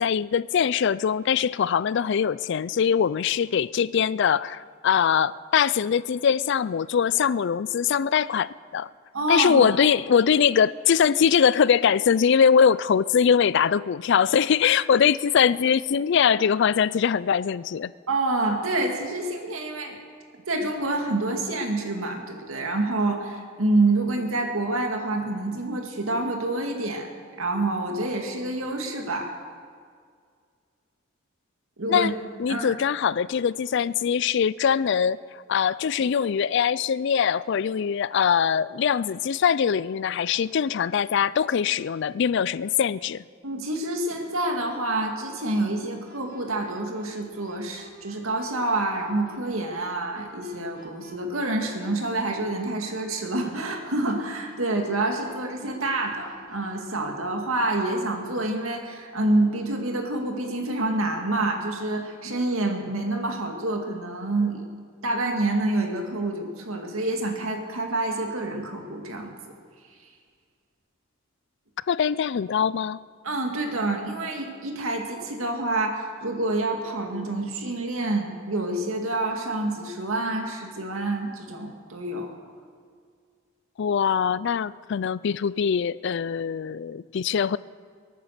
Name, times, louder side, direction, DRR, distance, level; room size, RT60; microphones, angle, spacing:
voice 1, 0.0-8.9 9.3-17.9 31.9-32.1 32.4-35.2 35.5-43.2 71.9-73.0 83.8-87.6, left 7 dB, 55° left, 19 dB, 0.4 m, -22 dB
voice 2, 9.1-9.6 18.1-20.0 20.5-27.1 27.4-29.3 31.8-32.1 32.5-32.8 43.4-64.7 65.0-69.3 73.2-82.3, right 2 dB, 85° right, 3 dB, 2.1 m, -27 dB
sound 1, 46.1-57.0, right 1 dB, 45° right, 2.5 m, -50 dB
22.5 x 9.2 x 6.6 m, 2.1 s
head